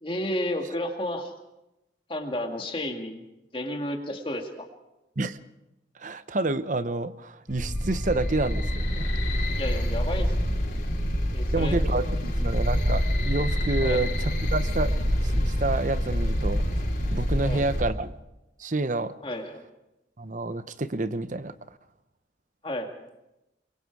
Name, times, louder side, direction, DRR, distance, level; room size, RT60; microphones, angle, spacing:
voice 1, 0.0-1.3 2.1-3.2 3.5-4.7 9.5-10.4 11.3-11.8 13.8-14.1 17.4-17.6 19.2-19.6 22.6-22.9, left 1 dB, 30° left, 3 dB, 2.2 m, -32 dB
voice 2, 6.0-9.2 11.5-14.9 15.2-18.1 18.6-19.1 20.2-21.5, right 2 dB, 45° right, 13 dB, 0.8 m, -29 dB
sound 1, 7.5-17.8, equal, 50° left, 5.8 m, -26 dB
23.5 x 23.5 x 4.8 m, 0.92 s
head